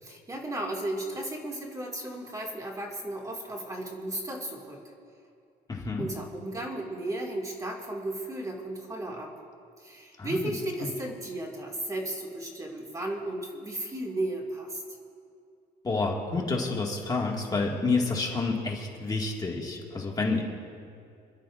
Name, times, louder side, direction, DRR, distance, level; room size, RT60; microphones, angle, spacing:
voice 1, 0.0-4.8 6.0-9.3 9.8-14.8, right 1 dB, 20° right, -1 dB, 2.1 m, -34 dB
voice 2, 5.7-6.1 10.2-10.5 10.8-10.9 15.8-20.4, left 3 dB, 25° left, -2 dB, 1.9 m, -29 dB
28.0 x 11.5 x 2.5 m, 2.4 s
cardioid pair, 110°, 17 cm